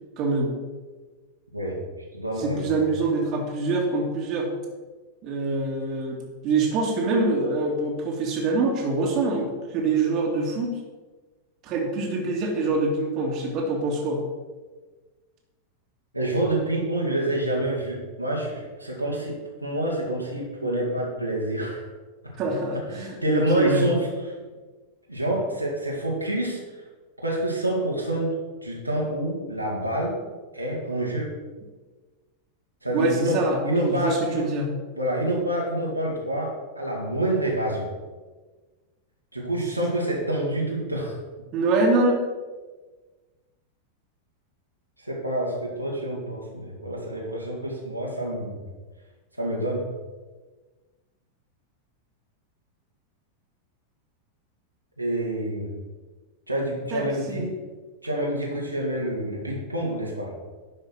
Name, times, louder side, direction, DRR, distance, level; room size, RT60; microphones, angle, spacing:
voice 1, 0.2-0.5 2.4-4.5 5.2-6.2 6.4-10.8 11.6-14.2 22.4-23.8 32.9-34.7 41.5-42.2 56.9-57.5, right 3 dB, 40° right, 0 dB, 2.2 m, -25 dB
voice 2, 2.1-2.8 16.1-21.9 22.2-22.3 22.9-24.3 25.1-26.8 27.2-30.2 30.5-31.3 32.8-34.5 34.9-37.9 39.3-41.2 45.0-48.7 49.4-49.9 55.0-55.8 56.5-57.5 58.0-60.3, right 1 dB, 90° right, -3 dB, 2.4 m, -27 dB
11.0 x 5.6 x 6.3 m, 1.3 s
figure-of-eight pair, 90°, 0 cm